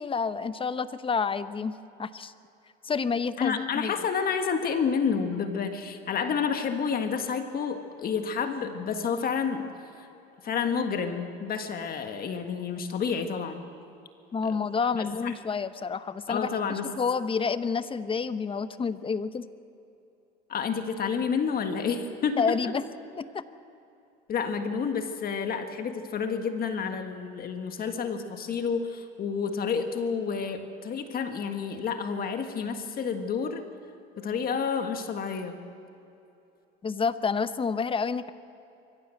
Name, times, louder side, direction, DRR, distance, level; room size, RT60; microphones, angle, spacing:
voice 1, 0.0-2.3 2.8-3.9 14.3-16.5 16.8-19.5 22.4-22.8 23.2-23.4 36.8-38.3, left 5 dB, 25° left, 13 dB, 0.9 m, -29 dB
voice 2, 3.4-9.7 10.0-10.1 10.4-13.6 14.4-14.6 14.9-15.3 16.3-16.8 20.5-22.5 24.3-33.6 34.2-35.6, left 6 dB, 45° left, 7 dB, 1.7 m, -29 dB
23.0 x 15.0 x 7.7 m, 2.8 s
supercardioid pair, 95°, 21 cm